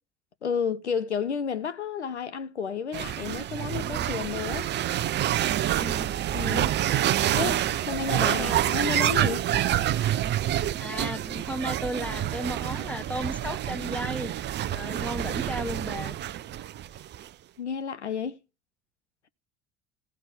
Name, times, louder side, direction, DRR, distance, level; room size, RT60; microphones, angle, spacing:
voice 1, 0.4-4.7 6.3-6.7 7.3-9.4 17.6-18.4, left 7 dB, 85° left, 0.7 m, -31 dB
sound 1, 2.9-17.3, right 12 dB, 30° right, 0.6 m, -27 dB
voice 2, 5.7-6.1 7.2-7.7 8.1-8.6 10.8-14.3 14.7-16.2, equal, 5° left, 1.5 m, -35 dB
15.5 x 5.9 x 8.9 m
figure-of-eight pair, 65°, 34 cm